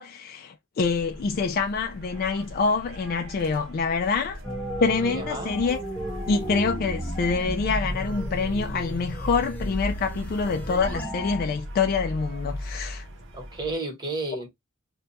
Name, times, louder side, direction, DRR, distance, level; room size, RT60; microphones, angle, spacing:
voice 1, 0.0-4.4 4.8-5.8 6.3-13.1, left 4 dB, 45° left, 0.3 m, -26 dB
sound 1, 0.8-13.7, equal, 65° right, 0.7 m, -40 dB
sound 2, 4.4-11.4, equal, 10° left, 0.8 m, -33 dB
voice 2, 5.0-5.6 13.3-14.5, right 2 dB, 20° right, 1.1 m, -32 dB
2.3 x 2.2 x 3.9 m
head